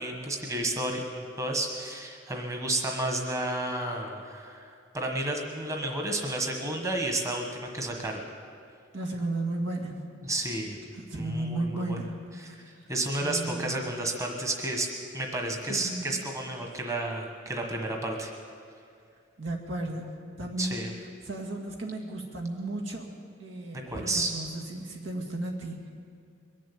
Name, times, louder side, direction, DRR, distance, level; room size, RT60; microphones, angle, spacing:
voice 1, 0.0-8.2 10.2-10.8 11.1-12.0 12.5-12.6 12.9-14.9 15.1-18.3 20.6-20.9 23.9-24.3, right 2 dB, 15° right, 1 dB, 1.4 m, -31 dB
voice 2, 8.9-10.0 10.9-12.1 13.2-13.8 15.7-16.2 19.4-20.1 20.4-20.8 21.2-23.1 23.4-25.9, right 2 dB, 80° right, 0 dB, 2.1 m, -34 dB
22.0 x 7.5 x 8.6 m, 2.3 s
head